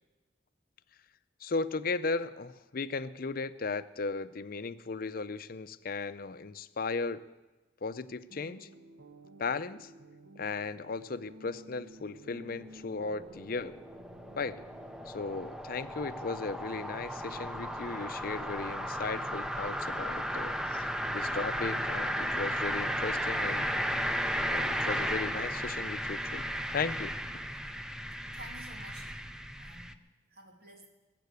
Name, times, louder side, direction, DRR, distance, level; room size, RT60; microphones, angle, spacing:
voice 1, 1.4-7.2 7.8-8.7 9.4-9.9 10.4-13.7 14.4-14.6 15.1-20.6 21.1-23.7 24.5-26.4 26.7-27.5, left 4 dB, 50° left, 13 dB, 0.6 m, -36 dB
sound 1, 8.3-15.4, right 1 dB, 90° right, 1.1 m, -53 dB
sound 2, 12.3-29.9, equal, 5° right, 0.5 m, -35 dB
voice 2, 28.3-29.1 29.6-30.0 30.3-30.9, right 1 dB, 55° right, 1 dB, 2.6 m, -51 dB
20.0 x 7.6 x 8.2 m, 1.2 s
head